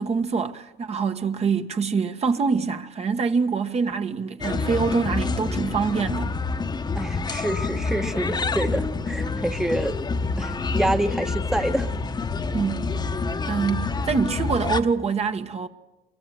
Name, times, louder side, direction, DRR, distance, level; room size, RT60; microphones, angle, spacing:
voice 1, 0.0-6.3 12.5-12.8 13.4-15.7, right 5 dB, 40° right, 1.4 m, -25 dB
sound 1, 4.4-14.8, left 4 dB, 25° left, 1.2 m, -27 dB
voice 2, 6.9-10.0 10.4-12.0, right 1 dB, 5° right, 1.2 m, -27 dB
24.0 x 23.5 x 7.8 m
cardioid pair, 110°, 17 cm